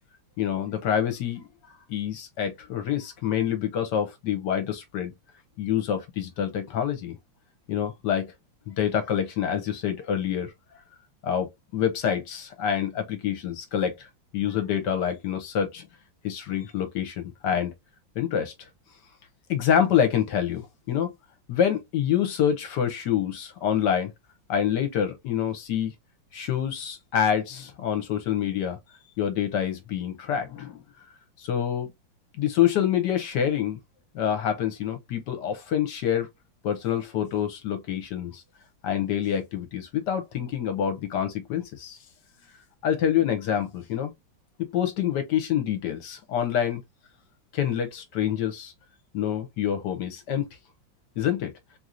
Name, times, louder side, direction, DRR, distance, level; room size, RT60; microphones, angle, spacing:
voice 1, 0.4-1.4 1.9-5.1 5.6-7.2 7.7-8.3 8.7-10.5 11.2-14.1 14.3-15.9 16.2-17.7 18.2-18.5 19.5-21.1 21.5-24.1 24.5-25.9 26.3-28.8 29.2-30.8 31.4-31.9 32.4-33.8 34.1-36.3 36.6-38.4 38.8-42.0 42.8-44.1 44.7-46.8 47.5-48.7 49.1-50.5 51.2-51.5, left 9 dB, 70° left, 1.2 m, -26 dB
3.2 x 2.8 x 2.4 m
omnidirectional pair, 2.1 m